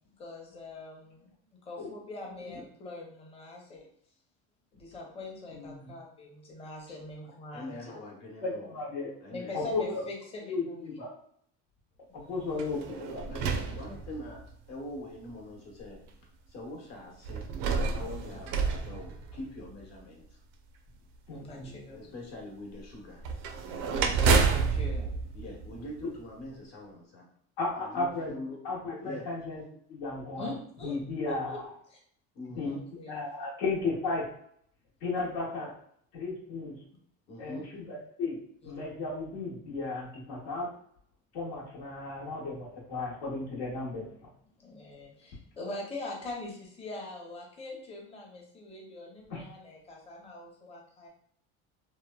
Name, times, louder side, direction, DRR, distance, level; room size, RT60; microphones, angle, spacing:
voice 1, 0.2-1.3 1.6-3.9 4.7-8.0 9.3-11.0 12.1-12.8 13.7-14.0 21.3-22.0 24.3-25.1 29.0-29.2 30.3-30.9 31.3-31.6 31.9-32.0 32.6-33.1 38.6-38.7 44.6-51.1, left 2 dB, 20° left, -1 dB, 0.6 m, -43 dB
voice 2, 5.5-5.9 8.4-9.1 9.5-10.0 10.5-11.1 12.1-13.6 21.3-21.8 27.6-28.3 28.6-29.6 29.9-30.5 30.8-31.6 32.6-32.7 33.1-34.3 35.0-35.7 36.1-36.8 37.4-38.4 38.6-40.7 41.3-44.3 49.3-49.4, left 3 dB, 90° left, -5 dB, 1.0 m, -34 dB
voice 3, 7.5-8.8 9.2-9.6 13.2-14.4 14.7-16.0 16.5-17.5 17.9-20.4 21.9-23.2 25.3-27.3 27.8-28.6 29.0-29.3 32.3-32.8 37.3-37.7, left 1 dB, 55° left, -1 dB, 1.0 m, -43 dB
sound 1, 12.5-14.5 15.3-15.4 17.2-19.8 23.2-26.3, right 5 dB, 85° right, 0.5 m, -29 dB
2.9 x 2.1 x 2.2 m, 0.65 s
cardioid pair, 125°, 32 cm